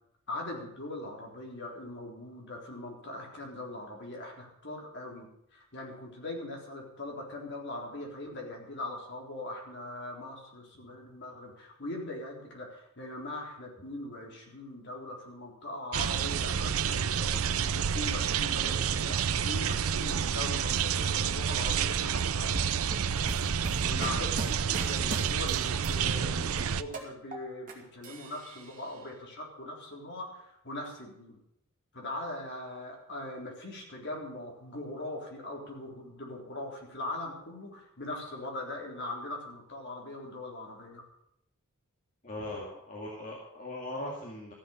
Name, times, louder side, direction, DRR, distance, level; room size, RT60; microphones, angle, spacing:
voice 1, 0.3-5.3 5.5-22.5 23.8-31.4 31.9-41.1, left 1 dB, 50° left, -1 dB, 3.9 m, -41 dB
sound 1, 15.9-26.8, right 7 dB, 75° right, 0.6 m, -29 dB
sound 2, 22.5-25.9 26.2-27.7 28.0-28.9, right 2 dB, 35° right, 2.6 m, -39 dB
voice 2, 23.8-24.2 42.2-44.5, left 1 dB, 35° left, -2 dB, 2.2 m, -40 dB
14.5 x 7.7 x 8.5 m, 0.76 s
head